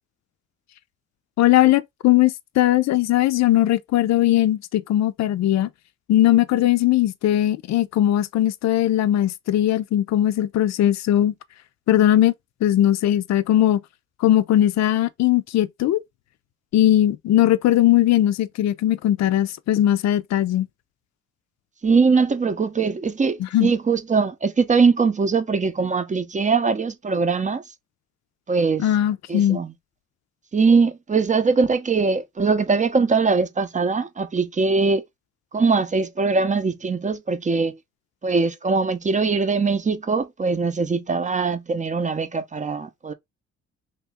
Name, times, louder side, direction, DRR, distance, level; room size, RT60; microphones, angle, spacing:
voice 1, 1.4-5.7 6.1-11.3 11.9-12.3 12.6-13.8 14.2-16.0 16.7-20.7 23.4-23.7 28.8-29.6, left 13 dB, 65° left, 0.5 m, -19 dB
voice 2, 21.8-27.6 28.5-28.8 29.3-29.7 30.5-35.0 35.5-37.8 38.2-43.1, right 4 dB, 25° right, 0.6 m, -21 dB
3.0 x 2.9 x 3.4 m
cardioid pair, 90°, 30 cm